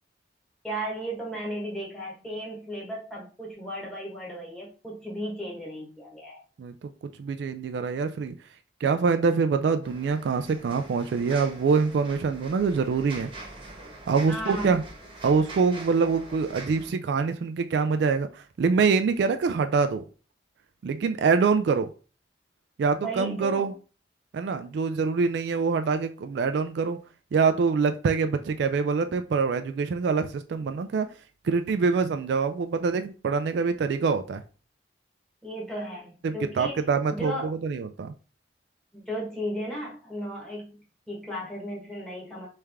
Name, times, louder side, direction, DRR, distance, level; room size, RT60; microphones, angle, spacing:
voice 1, 0.6-6.4 14.3-14.8 23.0-23.7 35.4-37.5 38.9-42.5, equal, 5° left, -4 dB, 1.3 m, -35 dB
voice 2, 6.6-6.9 7.2-8.3 8.8-13.3 14.1-14.8 15.2-20.0 20.8-21.9 22.8-23.7 24.3-27.0 27.3-31.1 31.4-34.4 36.2-38.1, right 5 dB, 65° right, 8 dB, 0.3 m, -25 dB
sound 1, 9.8-16.9, right 2 dB, 30° right, 1.1 m, -44 dB
3.4 x 3.3 x 3.4 m, 0.36 s
head